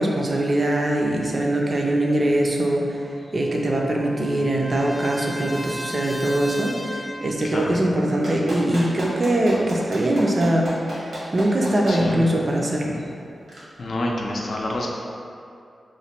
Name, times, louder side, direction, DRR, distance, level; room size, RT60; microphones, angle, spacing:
voice 1, 0.0-13.0, right 1 dB, 40° right, -1 dB, 0.5 m, -22 dB
Trumpet, 3.0-7.4, equal, 10° left, 0.5 m, -36 dB
voice 2, 7.4-7.8 11.9-12.3 13.8-14.9, left 1 dB, 60° left, -1 dB, 0.5 m, -28 dB
Clapping, 8.2-12.0 13.5-13.6, right 1 dB, 80° right, 1.1 m, -33 dB
3.1 x 2.2 x 4.2 m, 2.5 s
wide cardioid pair, 85°, 0 cm